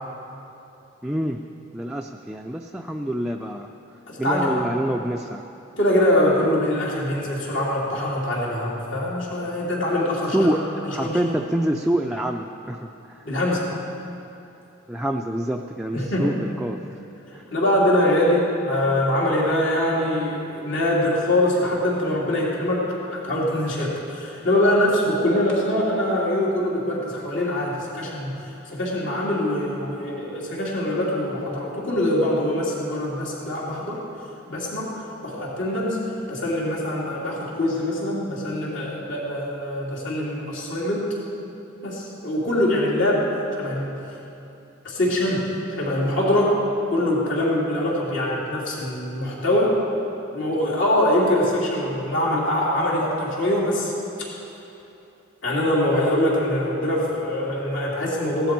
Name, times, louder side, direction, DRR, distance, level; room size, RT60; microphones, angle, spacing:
voice 1, 1.0-1.4 1.7-3.7 4.2-5.5 10.3-10.6 10.9-12.9 14.9-16.8 17.3-17.4, right 1 dB, 5° right, 1 dB, 0.4 m, -26 dB
voice 2, 4.1-4.7 5.8-10.6 10.8-11.2 13.2-13.7 15.9-16.3 17.5-34.0 34.5-34.9 35.2-36.0 36.3-41.1 41.8-43.3 43.5-43.9 44.8-46.6 46.9-49.7 50.3-53.9 55.4-58.5, left 1 dB, 65° left, -5 dB, 3.1 m, -23 dB
17.0 x 12.5 x 4.6 m, 2.9 s
head